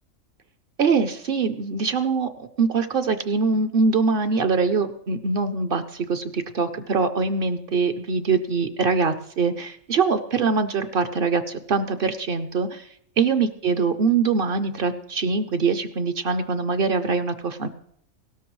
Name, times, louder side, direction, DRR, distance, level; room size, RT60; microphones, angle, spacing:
voice 1, 0.8-11.4 11.7-12.9 13.2-17.7, right 4 dB, 55° right, 11 dB, 0.7 m, -23 dB
17.0 x 13.0 x 3.1 m, 0.70 s
omnidirectional pair, 1.3 m